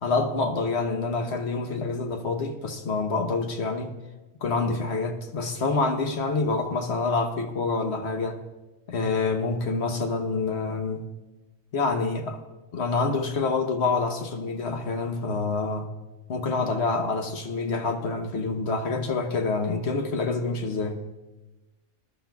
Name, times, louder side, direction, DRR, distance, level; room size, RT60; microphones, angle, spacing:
voice 1, 0.0-3.9 4.4-8.4 8.9-11.1 11.7-12.4 12.7-15.9 16.3-21.0, left 3 dB, 60° left, 5 dB, 1.3 m, -27 dB
21.0 x 11.5 x 2.4 m, 1.1 s
omnidirectional pair, 1.3 m